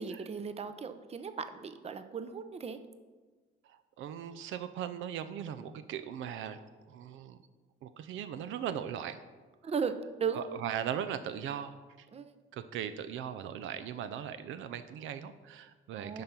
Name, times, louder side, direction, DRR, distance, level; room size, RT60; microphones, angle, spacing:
voice 1, 0.0-2.8 9.6-10.4 12.1-12.3 16.0-16.2, right 6 dB, 30° right, 10 dB, 0.6 m, -36 dB
voice 2, 3.6-7.4 7.8-9.2 9.6-9.7 10.3-12.1 12.5-16.2, right 9 dB, 80° right, 11 dB, 0.5 m, -39 dB
10.5 x 3.8 x 5.6 m, 1.4 s
cardioid pair, 90°, 20 cm